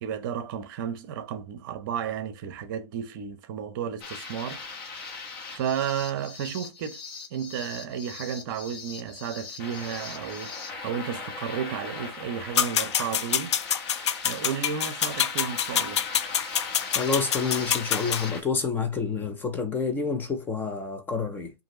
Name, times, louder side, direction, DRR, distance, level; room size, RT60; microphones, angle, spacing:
voice 1, 0.0-4.6 5.5-7.0 7.3-13.5 14.2-16.0, right 8 dB, 45° right, 0.9 m, -33 dB
sound 1, 4.0-18.4, left 4 dB, 35° left, 1.5 m, -39 dB
sound 2, 12.6-18.2, left 9 dB, 75° left, 0.6 m, -26 dB
voice 2, 16.9-21.5, left 5 dB, 15° left, 0.7 m, -28 dB
5.3 x 2.8 x 3.0 m
hypercardioid pair, 140°, 15 cm